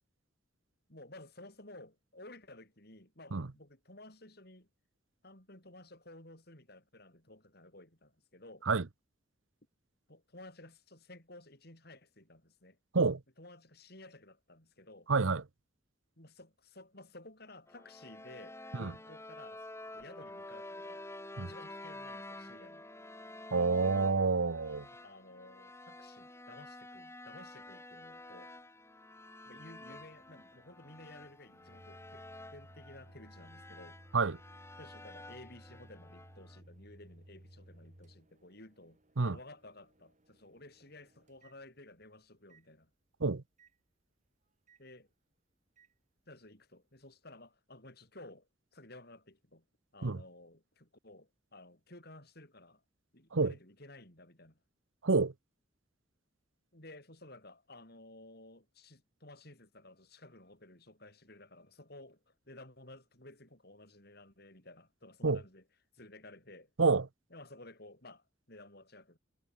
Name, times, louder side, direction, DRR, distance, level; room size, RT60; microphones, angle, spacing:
voice 1, 0.9-4.7 5.2-8.7 10.1-12.8 13.4-15.1 16.2-21.1 21.4-22.9 25.0-28.5 29.5-34.0 34.8-42.9 44.8-45.1 46.3-49.6 49.9-52.8 53.1-54.6 56.7-65.6 65.9-66.7 67.3-69.2, left 2 dB, 55° left, 7.8 m, -54 dB
voice 2, 15.1-15.4 18.7-18.9 21.4-21.5 23.5-24.9 34.1-34.4 39.2-39.4 43.2-43.4 50.0-50.2 53.3-53.5 55.0-55.3 65.2-65.4 66.8-67.1, right 4 dB, 85° right, 0.9 m, -28 dB
sound 1, 17.7-36.6, left 2 dB, 15° left, 3.1 m, -50 dB
Microwave oven, 29.5-42.1 42.5-42.7 43.6-43.7 44.7-44.8 45.8-45.9, right 1 dB, 40° right, 2.8 m, -59 dB
head